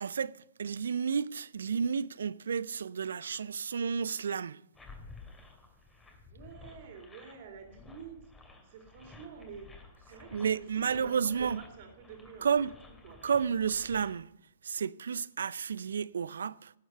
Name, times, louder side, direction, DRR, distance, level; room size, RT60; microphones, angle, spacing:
voice 1, 0.0-4.6 10.3-11.6 12.4-12.7 13.2-14.3 14.6-16.7, right 6 dB, 65° right, 0.5 m, -31 dB
sound 1, 4.7-14.2, left 3 dB, 10° left, 2.6 m, -53 dB
voice 2, 6.2-8.2 8.6-10.6 10.9-12.5 13.0-13.2, right 6 dB, 50° right, 3.4 m, -48 dB
18.5 x 7.9 x 5.6 m
figure-of-eight pair, 115°, 0 cm